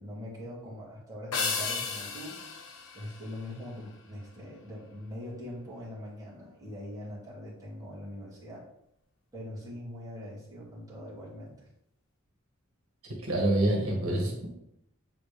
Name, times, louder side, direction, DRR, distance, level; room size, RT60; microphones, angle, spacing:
voice 1, 0.0-2.4 2.9-8.6 9.3-11.6, left 1 dB, 15° right, -8 dB, 2.4 m, -42 dB
sound 1, 1.3-3.9, left 5 dB, 80° left, 1.0 m, -34 dB
voice 2, 13.1-14.5, right 1 dB, 80° right, 0 dB, 1.3 m, -27 dB
7.2 x 4.1 x 3.4 m, 0.78 s
head